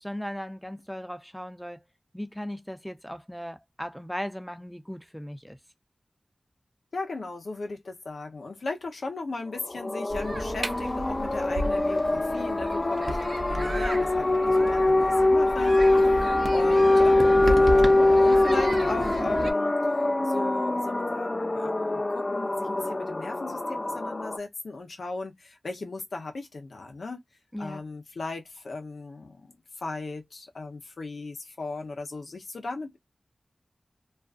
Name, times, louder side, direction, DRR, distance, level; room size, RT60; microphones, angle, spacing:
voice 1, 0.0-1.8 2.1-5.6 27.5-27.8, equal, 5° left, 0.6 m, -37 dB
voice 2, 6.9-15.8 16.2-19.8 20.2-27.2 27.6-33.0, left 3 dB, 85° left, 0.7 m, -37 dB
sound 1, 9.6-24.4, left 2 dB, 45° left, 0.4 m, -23 dB
sound 2, 10.1-19.5, right 2 dB, 65° right, 0.6 m, -33 dB
2.4 x 2.4 x 2.4 m
cardioid pair, 40°, 0 cm